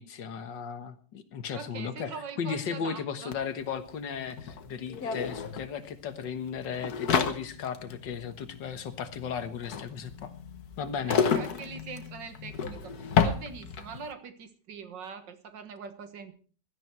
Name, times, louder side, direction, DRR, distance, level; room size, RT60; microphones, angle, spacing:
voice 1, 0.0-10.3 10.8-11.2, left 6 dB, 75° left, 10 dB, 2.0 m, -36 dB
voice 2, 1.5-3.3 11.0-16.3, right 5 dB, 75° right, 10 dB, 2.1 m, -43 dB
sound 1, 3.3-3.4 3.6-14.1, left 6 dB, 60° left, 1.6 m, -31 dB
16.5 x 12.5 x 4.6 m, 0.42 s
omnidirectional pair, 2.0 m